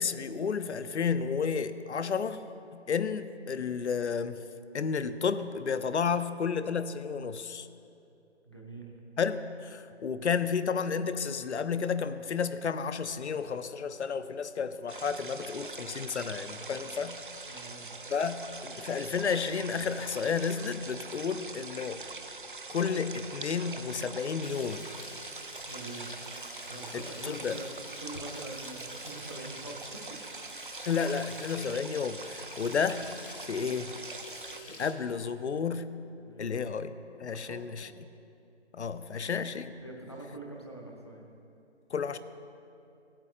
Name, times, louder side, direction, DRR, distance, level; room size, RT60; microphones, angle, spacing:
voice 1, 0.0-2.4 2.7-4.4 4.7-7.7 9.2-17.2 18.1-22.0 22.7-24.9 26.9-27.6 30.8-33.1 33.4-34.0 34.8-35.9 36.4-36.9 37.2-37.9 38.7-39.8 41.9-42.2, left 6 dB, 70° left, 12 dB, 0.5 m, -32 dB
voice 2, 8.4-8.9 17.4-17.9 25.7-26.1 26.7-27.7 28.0-30.0 30.3-30.4 31.5-31.7 36.2-36.7 37.3-37.7 39.8-41.2, right 2 dB, 25° left, -1 dB, 0.6 m, -44 dB
sound 1, 14.9-34.6, right 3 dB, 50° right, 0.4 m, -43 dB
Frying (food), 24.4-34.9, left 3 dB, 50° left, 1.5 m, -49 dB
15.0 x 8.7 x 2.4 m, 2.7 s
figure-of-eight pair, 165°, 35 cm